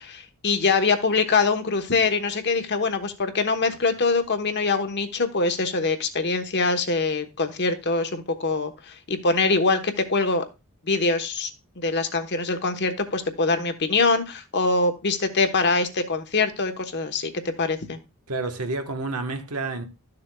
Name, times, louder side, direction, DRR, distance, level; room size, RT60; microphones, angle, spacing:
voice 1, 0.0-10.4 10.8-11.5 11.8-18.0, left 3 dB, 50° left, 1.0 m, -24 dB
voice 2, 18.3-19.9, right 3 dB, 85° right, 1.2 m, -29 dB
13.0 x 6.8 x 2.3 m
head